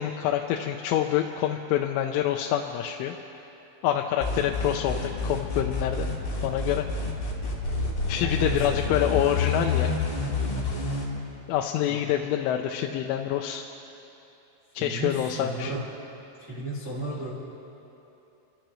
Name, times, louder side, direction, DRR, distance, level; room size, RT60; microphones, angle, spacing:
voice 1, 0.0-3.2 3.8-6.1 6.4-6.9 8.1-9.9 11.5-13.6 14.8-15.7, left 11 dB, 85° left, 3 dB, 3.1 m, -26 dB
sound 1, 4.2-11.0, left 3 dB, 40° left, 3.5 m, -28 dB
voice 2, 8.1-9.1 11.9-12.0 14.8-15.8 16.4-17.3, right 2 dB, 25° right, -8 dB, 1.6 m, -34 dB
29.5 x 13.5 x 3.1 m, 2.9 s
omnidirectional pair, 5.4 m